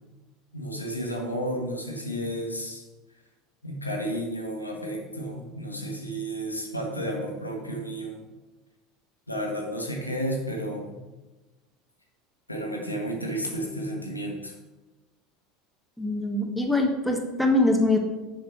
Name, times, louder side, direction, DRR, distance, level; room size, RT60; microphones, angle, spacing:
voice 1, 0.5-2.8 3.6-8.2 9.3-11.0 12.5-14.5, equal, 85° left, 0 dB, 1.2 m, -32 dB
voice 2, 16.0-18.0, left 2 dB, 5° left, 2 dB, 1.0 m, -23 dB
6.6 x 5.6 x 4.4 m, 1.1 s
figure-of-eight pair, 75°, 0 cm